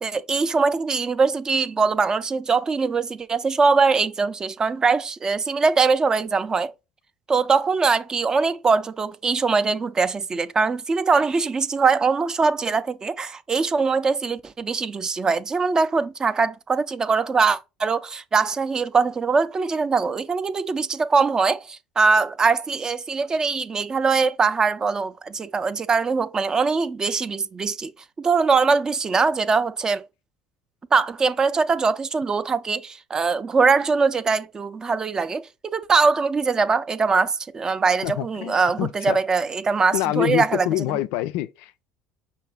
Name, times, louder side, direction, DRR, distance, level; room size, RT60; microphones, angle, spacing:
voice 1, 0.0-6.7 7.3-27.9 28.2-30.0 30.9-41.0, right 4 dB, 25° right, 0.4 m, -22 dB
voice 2, 38.0-39.2 39.9-41.8, left 14 dB, 65° left, 0.3 m, -26 dB
5.6 x 2.7 x 3.4 m
hypercardioid pair, 65°, 2 cm